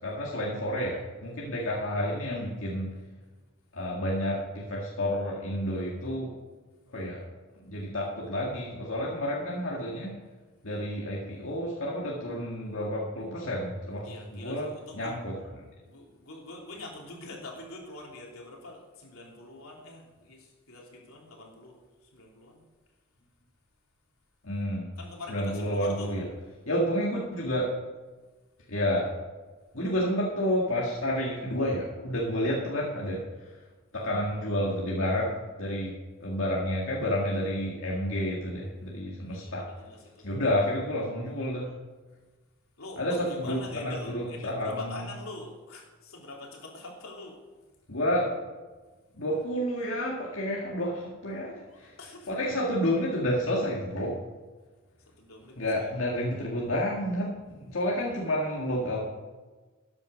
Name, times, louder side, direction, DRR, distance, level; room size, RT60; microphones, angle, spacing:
voice 1, 0.0-2.9 3.7-6.3 6.9-7.2 7.6-10.1 10.6-15.4 24.4-24.9 25.3-26.2 26.7-27.7 28.7-29.2 29.7-33.6 33.9-35.9 36.2-39.7 40.2-41.7 43.0-45.0 47.9-48.3 49.2-51.9 52.3-54.2 55.6-59.0, equal, 70° left, -4 dB, 2.1 m, -30 dB
voice 2, 14.0-15.2 15.9-22.6 25.0-26.1 29.6-29.9 39.3-40.4 42.8-47.4 51.7-52.4 55.0-55.9 57.8-57.9, left 2 dB, 90° left, -1 dB, 3.2 m, -44 dB
13.0 x 9.7 x 5.2 m, 1.3 s
head